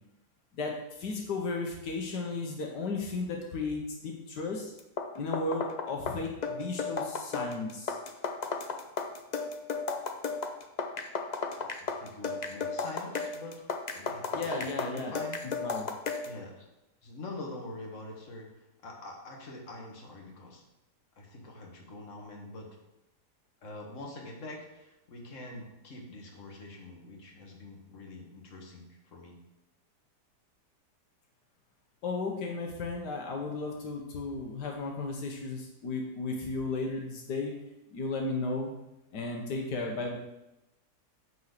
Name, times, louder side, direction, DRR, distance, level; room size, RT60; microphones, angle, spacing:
voice 1, 0.5-4.7 5.2-8.0 14.3-15.1 15.6-15.9 32.0-37.5 37.9-38.7 39.1-40.2, left 3 dB, 80° left, 1 dB, 1.7 m, -34 dB
sound 1, 4.8-16.4, left 4 dB, 65° left, 0.4 m, -34 dB
voice 2, 11.6-13.6 13.9-15.4 16.3-16.6 17.0-20.6 21.2-22.8 23.6-29.4, left 2 dB, 50° left, 0 dB, 1.9 m, -45 dB
9.2 x 4.2 x 6.6 m, 0.92 s
omnidirectional pair, 1.8 m